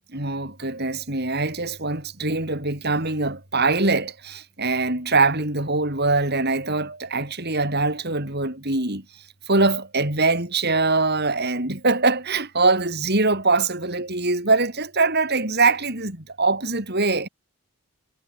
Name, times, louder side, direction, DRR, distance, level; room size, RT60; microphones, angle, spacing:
voice 1, 0.1-9.0 9.5-17.3, right 3 dB, 45° right, 5.6 m, -23 dB
head